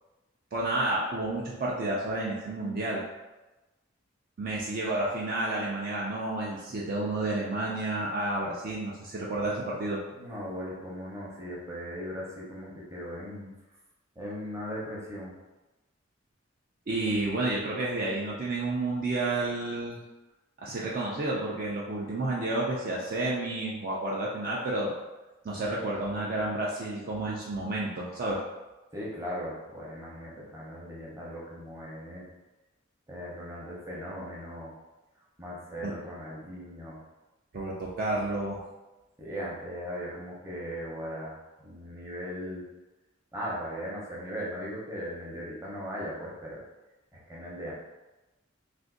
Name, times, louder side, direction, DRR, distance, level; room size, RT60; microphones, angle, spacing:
voice 1, 0.5-3.0 4.4-10.0 16.9-20.0 20.6-24.9 25.4-28.4 35.8-35.9 37.5-38.6, right 2 dB, 45° right, -5 dB, 0.4 m, -30 dB
voice 2, 10.1-13.5 14.2-15.3 28.9-32.3 33.1-34.7 35.4-37.0 39.2-42.7 43.3-46.6 47.1-47.7, equal, 15° right, -6 dB, 0.7 m, -38 dB
2.5 x 2.5 x 3.7 m, 1.1 s
head